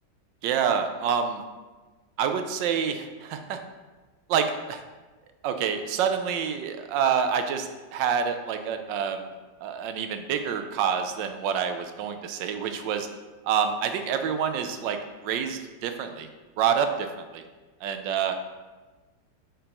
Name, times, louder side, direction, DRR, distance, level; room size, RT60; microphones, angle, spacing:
voice 1, 0.4-1.4 2.2-3.6 4.3-4.8 5.4-9.3 9.6-13.1 13.4-15.0 15.2-16.3 16.6-17.1 17.3-17.4 17.8-18.3, right 7 dB, 85° right, 7 dB, 1.4 m, -27 dB
10.0 x 6.5 x 3.0 m, 1.3 s
omnidirectional pair, 1.9 m